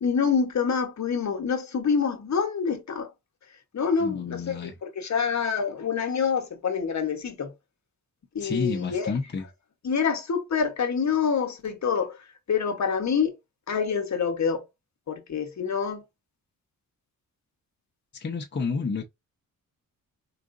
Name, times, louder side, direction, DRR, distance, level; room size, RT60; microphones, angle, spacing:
voice 1, 0.0-3.1 3.7-7.5 8.3-9.1 9.8-12.2 12.5-13.3 13.7-14.6 15.1-16.0, left 6 dB, 50° left, 1.1 m, -26 dB
voice 2, 4.0-4.7 8.4-9.5 18.1-19.0, left 5 dB, 30° left, 0.8 m, -30 dB
4.7 x 2.5 x 2.6 m
cardioid pair, 90°, 36 cm